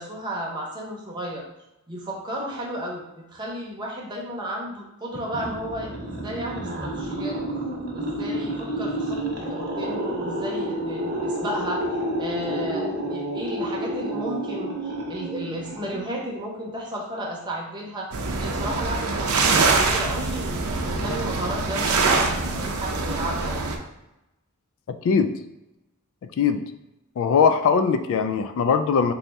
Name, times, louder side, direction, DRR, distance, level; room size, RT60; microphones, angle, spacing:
voice 1, 0.0-1.4 1.9-3.0 3.3-7.4 7.9-11.8 12.2-18.1 18.4-23.6, equal, 20° right, -2 dB, 0.9 m, -33 dB
sound 1, 5.1-16.3, right 1 dB, 45° right, 0.9 m, -30 dB
sound 2, 18.1-23.8, right 3 dB, 80° right, 0.6 m, -24 dB
voice 2, 25.0-25.4 26.4-26.6 27.2-29.1, left 6 dB, 65° left, 9 dB, 0.3 m, -20 dB
4.1 x 2.7 x 3.4 m, 0.94 s
head